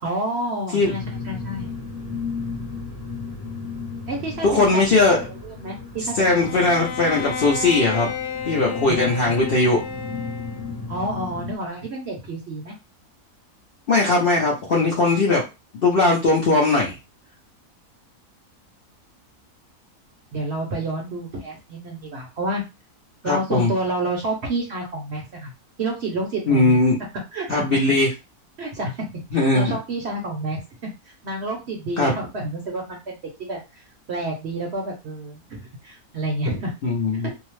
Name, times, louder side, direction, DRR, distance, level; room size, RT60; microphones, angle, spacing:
voice 1, 0.0-1.7 4.1-4.8 5.4-6.7 8.9-9.0 10.9-12.7 20.3-22.6 23.2-25.5 25.8-26.8 27.3-27.5 28.6-30.6 31.2-33.8 34.1-36.7 37.2-37.3, right 2 dB, 55° right, 0 dB, 0.8 m, -29 dB
sound 1, 0.8-11.6, left 4 dB, 10° left, 0.8 m, -34 dB
voice 2, 4.4-5.3 6.1-8.1 8.5-9.8 13.9-15.4 15.8-17.0 23.2-23.7 26.5-27.0 27.5-28.1 29.3-29.8 32.0-32.1 36.8-37.3, left 2 dB, 55° left, -3 dB, 0.6 m, -19 dB
Bowed string instrument, 6.4-10.8, left 6 dB, 85° left, 1.1 m, -32 dB
2.7 x 2.0 x 3.0 m, 0.26 s
omnidirectional pair, 1.6 m